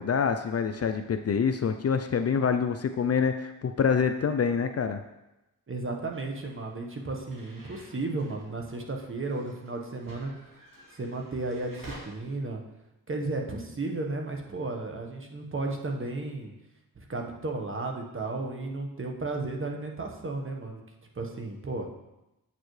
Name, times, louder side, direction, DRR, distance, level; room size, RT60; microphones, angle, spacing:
voice 1, 0.0-5.0, left 6 dB, 40° left, 8 dB, 0.5 m, -26 dB
voice 2, 5.7-10.3 10.9-12.6 13.1-16.5 16.9-20.8 21.1-21.9, right 2 dB, 35° right, 2 dB, 1.2 m, -34 dB
sound 1, 6.1-12.0, right 1 dB, 60° right, 2.5 m, -51 dB
8.0 x 6.8 x 3.2 m, 0.95 s
cardioid pair, 75°, 37 cm